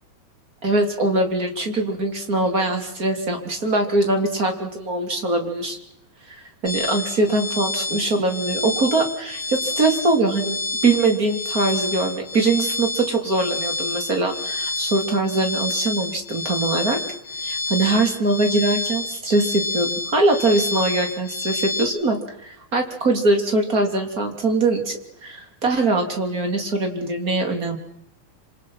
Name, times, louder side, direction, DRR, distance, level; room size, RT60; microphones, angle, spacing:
voice 1, 0.6-5.8 6.6-17.0 17.4-27.8, right 2 dB, 25° right, 4 dB, 3.4 m, -22 dB
sound 1, 6.7-21.9, left 3 dB, 20° left, 4.4 m, -29 dB
27.5 x 26.5 x 5.9 m, 0.77 s
omnidirectional pair, 3.7 m